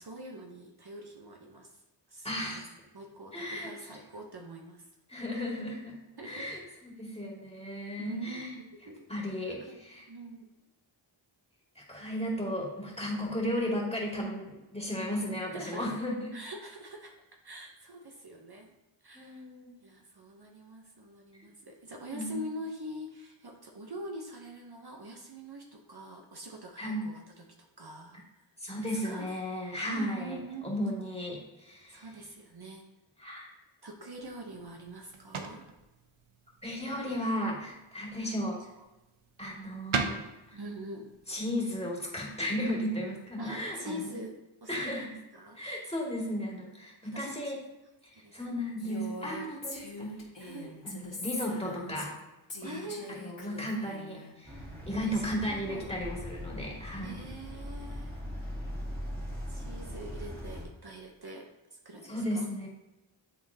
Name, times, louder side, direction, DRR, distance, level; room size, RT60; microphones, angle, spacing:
voice 1, 0.0-1.8 2.1-2.6 2.9-4.9 6.2-6.5 8.0-9.1 9.5-9.8 10.1-10.5 15.5-15.9 16.3-17.1 17.4-18.7 19.0-19.5 19.8-28.2 28.8-29.3 29.9-30.8 31.9-32.8 33.8-35.7 36.9-37.3 38.2-38.4 40.5-41.1 43.4-45.6 47.0-47.5 48.1-48.4 49.4-49.9 50.4-50.8 52.6-53.2 54.9-55.9 57.0-58.2 59.5-62.5, right 1 dB, 50° right, 2 dB, 0.9 m, -44 dB
voice 2, 2.2-2.7 3.3-4.0 5.1-6.0 6.2-8.5 9.1-10.1 11.8-16.4 19.1-19.7 21.4-21.5 22.1-22.4 26.8-27.1 28.6-32.1 33.2-33.5 36.6-38.6 39.4-40.6 41.3-44.2 44.7-45.2 45.6-47.6 48.0-50.2 50.8-52.1 52.6-52.8 53.1-57.3 62.0-62.7, equal, 10° left, -3 dB, 2.1 m, -35 dB
sound 1, 34.1-43.3, right 5 dB, 75° right, 0.7 m, -41 dB
Female speech woman speaking, 48.8-52.2 52.5-54.3, left 2 dB, 60° left, 2.2 m, -43 dB
sound 2, 54.4-60.6, equal, 20° right, 2.1 m, -40 dB
11.0 x 3.7 x 2.8 m, 1.0 s
wide cardioid pair, 45°, 49 cm